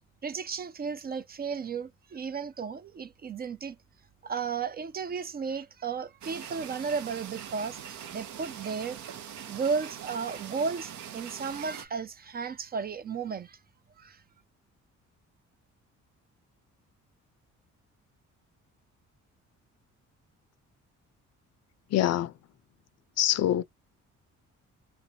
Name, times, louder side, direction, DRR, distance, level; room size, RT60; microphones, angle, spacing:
voice 1, 0.2-3.8 4.2-9.1 9.5-13.6 14.0-14.2, right 5 dB, 30° right, 0.4 m, -34 dB
sound 1, 6.2-11.9, right 9 dB, 70° right, 0.7 m, -42 dB
voice 2, 21.9-22.3 23.2-23.6, left 12 dB, 60° left, 0.4 m, -24 dB
3.4 x 2.6 x 2.7 m
cardioid pair, 90°, 30 cm